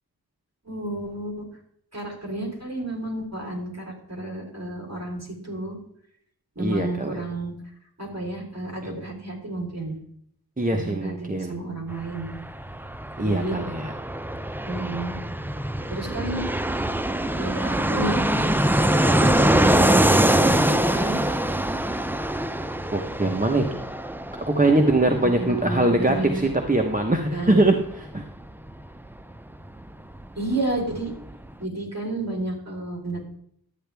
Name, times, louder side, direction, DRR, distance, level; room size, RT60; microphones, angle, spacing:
voice 1, 0.6-1.5 1.9-5.8 6.6-7.5 8.0-10.0 10.7-12.3 13.2-13.6 14.7-15.1 15.9-16.6 17.3-18.5 19.1-21.2 25.2-26.5 27.3-27.7 30.4-31.1 31.6-33.2, right 2 dB, 45° right, 0 dB, 3.9 m, -31 dB
voice 2, 6.6-7.2 10.6-11.6 13.2-13.9 22.9-23.8 24.4-28.2, right 2 dB, 20° right, 2 dB, 1.1 m, -22 dB
Fixed-wing aircraft airplane, 11.9-30.3 30.5-30.6 30.8-31.5, right 1 dB, 5° right, 0.5 m, -24 dB
12.5 x 9.2 x 3.5 m, 0.69 s
wide cardioid pair, 70°, 37 cm